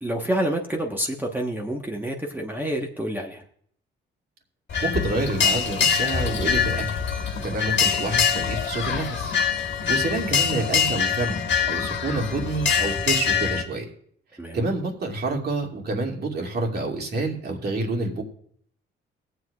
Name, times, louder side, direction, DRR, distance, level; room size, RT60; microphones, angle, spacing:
voice 1, 0.0-3.4 14.4-14.6, right 1 dB, 10° right, 1 dB, 1.2 m, -28 dB
sound 1, 4.7-13.6, left 7 dB, 65° left, 1.5 m, -24 dB
voice 2, 4.8-6.9 7.4-9.3 9.9-11.4 11.7-13.8 14.5-18.2, right 2 dB, 55° right, 0 dB, 2.5 m, -28 dB
23.0 x 7.9 x 2.4 m, 0.63 s
cardioid pair, 90°, 20 cm